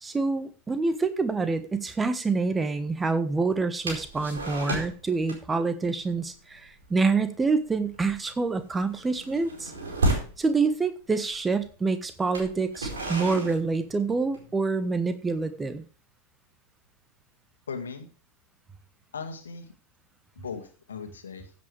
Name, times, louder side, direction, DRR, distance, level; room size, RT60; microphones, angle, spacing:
voice 1, 0.0-9.7 10.4-15.8, right 4 dB, 15° right, 11 dB, 1.4 m, -27 dB
sound 1, 3.9-5.0 5.3-5.6 5.9-6.1 6.5-6.8 7.1-7.4 7.7-10.4 11.2-11.3 12.2-14.5, right 1 dB, 70° right, 4.5 m, -32 dB
voice 2, 17.7-18.1 19.1-19.7 20.4-21.5, left 5 dB, 70° left, 5 dB, 1.9 m, -38 dB
15.5 x 8.4 x 3.4 m, 0.38 s
figure-of-eight pair, 90°, 0 cm